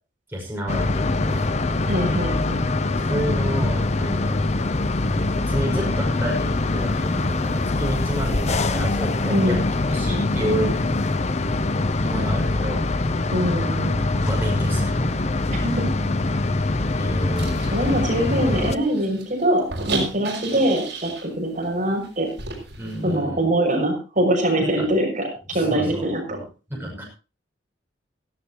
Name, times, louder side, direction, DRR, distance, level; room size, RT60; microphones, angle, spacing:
voice 1, 0.3-1.5 3.1-4.4 5.4-9.6 9.9-11.1 12.0-12.8 14.2-15.1 17.0-18.0 22.8-23.4 24.6-24.9 25.5-26.1 26.7-27.0, equal, 10° right, -2 dB, 5.8 m, -29 dB
sound 1, 0.7-18.8, left 2 dB, 40° left, 0.7 m, -23 dB
voice 2, 1.9-2.6 9.3-9.6 13.3-14.0 15.5-15.7 17.7-22.3 23.0-26.4, right 1 dB, 45° right, 1 dB, 6.5 m, -23 dB
sound 2, 17.3-21.3 21.6-21.7 22.0-23.0, right 3 dB, 65° right, 6.5 m, -33 dB
17.0 x 16.0 x 3.0 m, 0.34 s
head